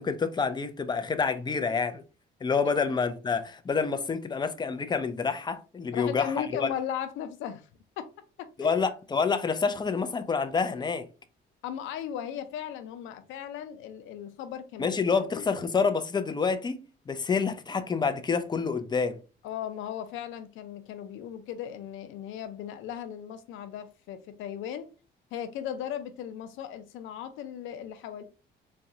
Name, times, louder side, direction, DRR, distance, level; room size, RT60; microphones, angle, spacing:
voice 1, 0.0-2.0 2.4-6.7 8.6-11.1 14.8-19.2, left 5 dB, 20° left, 0.5 m, -28 dB
voice 2, 5.9-7.7 8.0-8.1 8.4-8.8 11.6-15.5 19.4-24.9 25.3-28.2, left 9 dB, 85° left, 0.6 m, -37 dB
4.1 x 2.3 x 2.7 m
cardioid pair, 95°, 20 cm